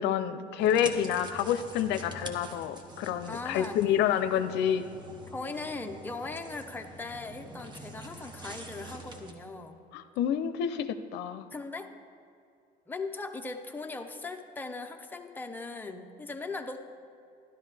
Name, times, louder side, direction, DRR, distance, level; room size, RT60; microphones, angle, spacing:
voice 1, 0.0-4.8 9.9-10.9 11.1-11.4, left 9 dB, 85° left, 10 dB, 0.5 m, -28 dB
sound 1, 0.6-9.3, right 1 dB, 25° right, 1.1 m, -45 dB
voice 2, 3.3-3.8 5.3-9.8 11.5-11.9 12.9-16.8, left 3 dB, 10° left, 4 dB, 0.7 m, -39 dB
12.5 x 11.5 x 3.4 m, 2.5 s
cardioid pair, 110°, 17 cm